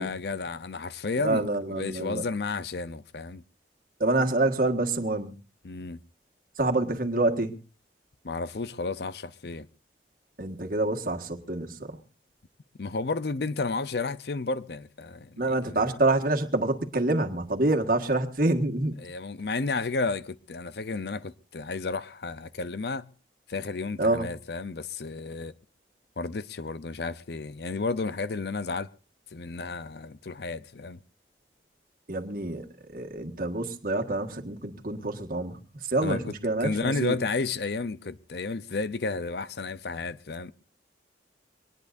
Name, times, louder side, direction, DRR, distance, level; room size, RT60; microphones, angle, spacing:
voice 1, 0.0-3.4 5.6-6.0 8.2-9.7 12.8-15.8 19.0-23.1 23.5-25.5 26.2-28.9 29.3-31.0 36.0-36.3 36.6-40.5, left 3 dB, 65° left, 0.6 m, -32 dB
voice 2, 1.2-2.2 4.0-5.3 6.6-7.5 10.4-12.0 15.4-19.0 24.0-24.3 32.1-37.2, right 2 dB, 55° right, 1.7 m, -27 dB
23.0 x 19.0 x 2.6 m
head